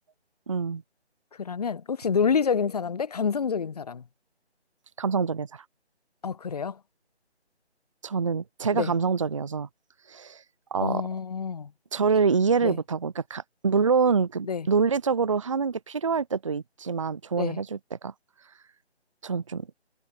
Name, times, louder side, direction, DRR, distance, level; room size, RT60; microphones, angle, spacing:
voice 1, 0.5-0.8 5.0-5.6 8.0-9.7 10.1-10.4 10.7-11.0 11.9-18.1 19.2-19.7, right 5 dB, 30° right, 0.9 m, -26 dB
voice 2, 1.4-4.0 6.2-6.8 8.7-8.9 10.8-11.7 12.6-12.7 14.5-14.7 17.4-17.6, left 6 dB, 35° left, 1.5 m, -27 dB
figure-of-eight pair, 165°, 33 cm